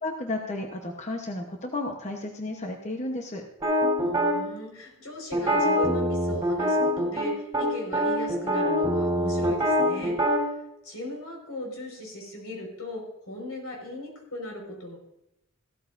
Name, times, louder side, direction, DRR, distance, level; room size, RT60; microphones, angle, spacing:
voice 1, 0.0-3.4, left 2 dB, 30° left, 3 dB, 1.0 m, -33 dB
sound 1, 3.6-4.4 5.3-7.3 7.5-7.7 7.9-10.4, equal, 15° right, 3.7 m, -24 dB
voice 2, 4.0-10.4 10.8-15.0, left 1 dB, 85° left, 0 dB, 4.9 m, -38 dB
15.0 x 13.5 x 2.6 m, 0.84 s
head